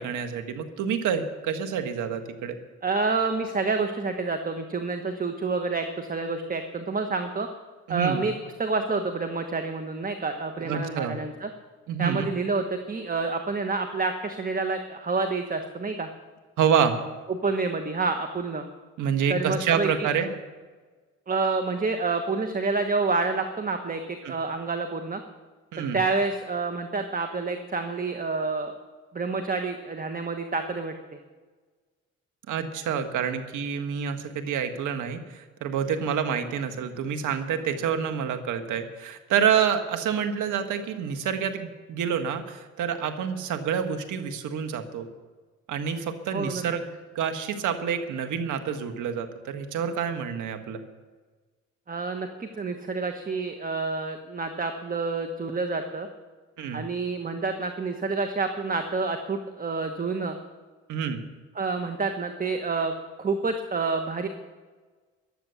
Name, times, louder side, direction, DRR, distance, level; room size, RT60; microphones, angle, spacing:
voice 1, 0.0-2.6 7.9-8.2 10.6-11.2 11.9-12.3 16.6-17.0 19.0-20.3 24.2-24.4 25.7-26.0 32.5-45.1 45.7-50.8 56.6-56.8 60.9-61.2, right 7 dB, 80° right, 8 dB, 1.6 m, -28 dB
voice 2, 2.8-7.5 7.9-8.3 8.6-11.5 12.0-16.1 17.3-18.6 19.3-20.1 21.3-24.0 24.3-25.2 25.8-28.7 29.1-30.9 46.3-46.6 51.9-56.1 56.7-60.4 61.5-62.9 63.2-64.3, right 4 dB, 30° right, 6 dB, 1.3 m, -28 dB
14.5 x 11.0 x 7.0 m, 1.4 s
cardioid pair, 90°, 30 cm